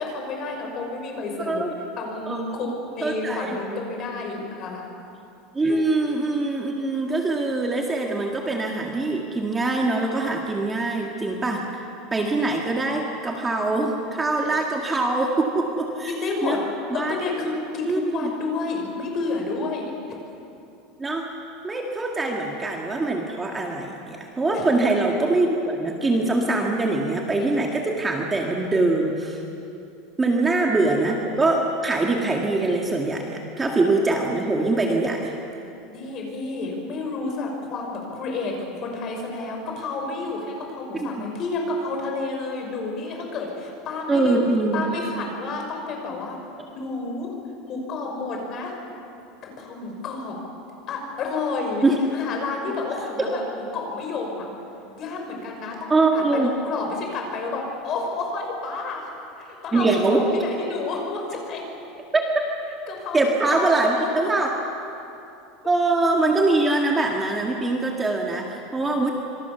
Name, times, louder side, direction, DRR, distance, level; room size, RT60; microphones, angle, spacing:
voice 1, 0.0-1.6 2.0-4.9 5.7-5.8 16.1-16.6 16.9-19.9 24.5-24.6 35.9-44.4 44.7-46.4 46.7-47.3 47.7-48.7 49.6-50.3 50.9-51.8 52.1-54.5 55.0-59.1 59.4-59.9 60.3-61.6 62.9-63.2 63.5-64.3, left 3 dB, 35° left, 1 dB, 5.9 m, -30 dB
voice 2, 2.3-2.7 3.0-3.6 5.5-11.8 12.1-16.1 16.4-16.6 16.9-17.1 17.8-18.3 21.0-21.3 21.6-29.4 30.2-35.3 41.0-41.3 44.1-44.8 51.8-52.0 53.2-53.3 55.9-56.5 59.7-60.2 62.1-62.3 63.1-64.5 65.7-69.1, right 2 dB, 10° right, 0 dB, 1.9 m, -23 dB
26.5 x 25.0 x 6.9 m, 2.8 s
supercardioid pair, 160°, 0 cm